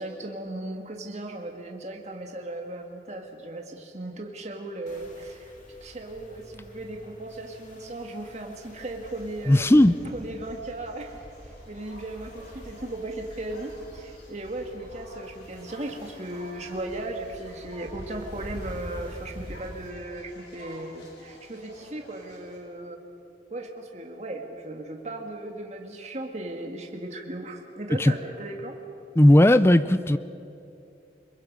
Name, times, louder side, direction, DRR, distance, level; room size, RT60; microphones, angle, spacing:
voice 1, 0.0-5.5 5.8-9.7 10.1-23.0 23.5-28.8, right 1 dB, 40° right, 2 dB, 1.8 m, -37 dB
sound 1, 4.9-19.9, equal, 45° left, 3.1 m, -46 dB
sound 2, 8.7-22.6, left 1 dB, 75° left, 5.2 m, -51 dB
voice 2, 9.5-10.0 28.0-28.1 29.2-30.2, left 1 dB, 15° left, 14 dB, 0.5 m, -16 dB
29.5 x 21.0 x 5.3 m, 2.6 s
head